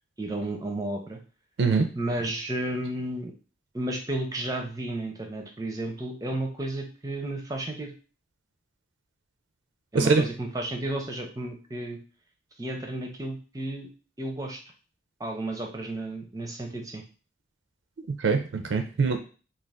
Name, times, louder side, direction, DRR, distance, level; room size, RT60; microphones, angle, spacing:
voice 1, 0.2-1.2 2.0-3.3 3.7-7.9 9.9-12.0 12.6-13.9 14.2-14.6 15.2-17.0, right 1 dB, 20° right, 2 dB, 0.5 m, -32 dB
voice 2, 18.1-19.2, right 4 dB, 85° right, 5 dB, 0.4 m, -23 dB
2.4 x 2.3 x 3.4 m, 0.36 s
head